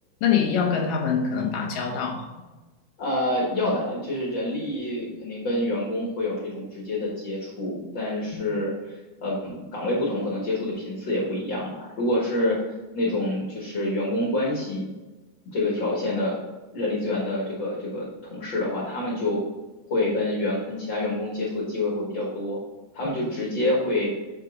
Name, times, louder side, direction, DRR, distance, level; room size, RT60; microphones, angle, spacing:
voice 1, 0.2-2.2 8.3-8.4 23.0-23.1, left 7 dB, 85° left, 1 dB, 2.9 m, -24 dB
voice 2, 3.0-8.9 9.2-12.6 12.9-14.9 15.5-16.4 16.7-19.4 19.9-22.6 22.9-24.1, left 1 dB, 45° left, -4 dB, 2.0 m, -27 dB
7.4 x 6.6 x 3.8 m, 1.2 s
omnidirectional pair, 3.8 m